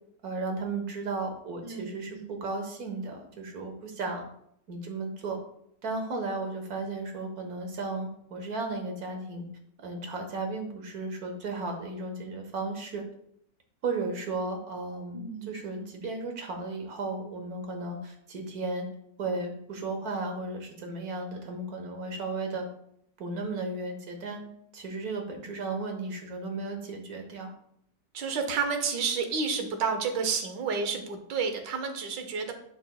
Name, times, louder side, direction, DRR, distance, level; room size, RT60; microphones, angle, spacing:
voice 1, 0.2-4.2 4.7-5.4 5.8-9.5 9.8-13.0 13.8-18.9 19.2-22.7 23.2-24.5 24.7-27.5, right 3 dB, 60° right, 3 dB, 1.7 m, -34 dB
voice 2, 1.6-2.3 15.1-15.9 28.1-32.5, right 5 dB, 80° right, 6 dB, 1.6 m, -31 dB
11.0 x 5.2 x 2.3 m, 0.72 s
omnidirectional pair, 1.9 m